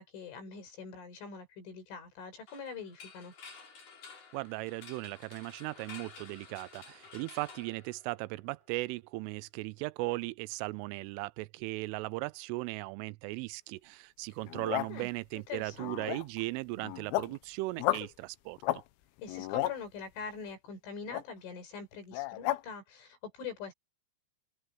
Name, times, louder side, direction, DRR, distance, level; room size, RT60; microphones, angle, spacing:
voice 1, 0.0-3.3 14.9-16.2 19.2-23.7, left 5 dB, 65° left, 7.6 m, -44 dB
sound 1, 2.5-8.5, left 5 dB, 40° left, 7.1 m, -52 dB
voice 2, 4.3-18.8, right 22 dB, 85° right, 3.0 m, -37 dB
sound 2, 14.4-15.0 15.7-16.4 16.8-17.4 17.8-18.1 18.6-18.8 19.2-19.8 21.1-21.2 22.1-22.6, left 16 dB, 85° left, 3.8 m, -33 dB
open air
omnidirectional pair, 5.9 m